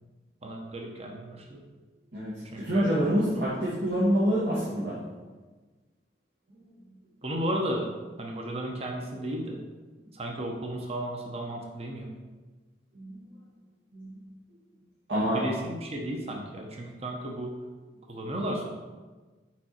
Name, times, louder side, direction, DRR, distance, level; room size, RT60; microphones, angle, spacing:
voice 1, 0.4-1.6 2.4-2.9 7.2-7.9 8.2-9.6 10.1-12.1 15.2-17.5 18.1-18.7, right 1 dB, 35° right, 1 dB, 0.9 m, -34 dB
voice 2, 2.1-5.0 6.5-6.6 12.9-13.2 13.9-14.1 15.1-15.4, equal, 75° right, -11 dB, 2.1 m, -27 dB
7.4 x 4.8 x 4.4 m, 1.3 s
head